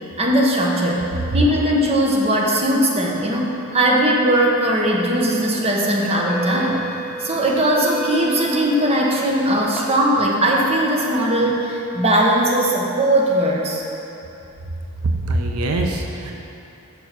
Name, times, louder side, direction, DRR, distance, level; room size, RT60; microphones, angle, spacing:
voice 1, 0.2-1.1 1.3-6.9 7.2-13.8, right 1 dB, 30° right, -3 dB, 1.0 m, -19 dB
sound 1, 5.0-5.2 6.0-9.8, right 2 dB, ahead, 0.8 m, -32 dB
voice 2, 15.0-16.4, right 2 dB, 80° right, 2 dB, 0.6 m, -23 dB
6.9 x 5.5 x 6.0 m, 2.9 s
head